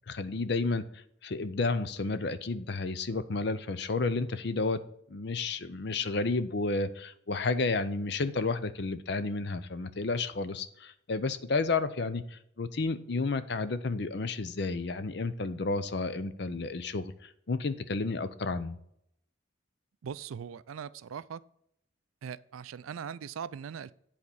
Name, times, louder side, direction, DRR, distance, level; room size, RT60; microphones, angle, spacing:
voice 1, 0.1-4.8 5.1-18.8, left 3 dB, 55° left, 0.6 m, -31 dB
voice 2, 20.0-21.4 22.2-23.9, right 7 dB, 90° right, 0.4 m, -40 dB
8.4 x 4.3 x 6.8 m
head